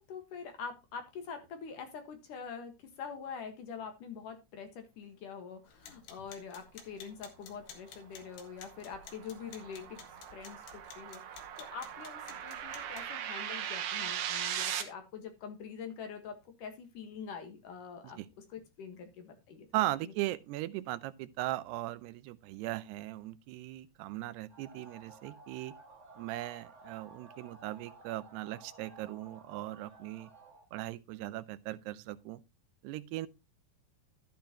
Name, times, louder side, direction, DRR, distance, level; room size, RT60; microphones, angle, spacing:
voice 1, 0.0-10.0 10.3-19.7 20.0-20.1, left 6 dB, 60° left, 2.8 m, -45 dB
sound 1, 5.7-13.1, left 7 dB, 80° left, 3.7 m, -54 dB
sound 2, 8.0-14.8, right 9 dB, 65° right, 2.6 m, -39 dB
voice 2, 19.7-25.7 26.2-30.3 30.7-32.4 32.8-33.3, right 16 dB, 90° right, 2.8 m, -38 dB
sound 3, 24.5-30.7, right 3 dB, 35° right, 1.1 m, -55 dB
12.0 x 9.2 x 2.9 m
omnidirectional pair, 4.7 m